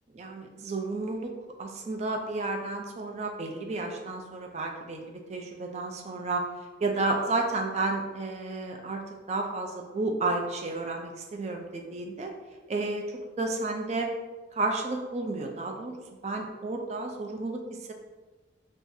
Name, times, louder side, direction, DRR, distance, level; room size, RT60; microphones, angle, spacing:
voice 1, 0.1-1.3 1.6-6.4 6.8-9.0 9.3-12.3 12.7-13.0 13.4-14.1 14.6-16.0 16.2-17.9, right 3 dB, 40° right, 2 dB, 0.4 m, -31 dB
3.8 x 2.4 x 2.6 m, 1.2 s
head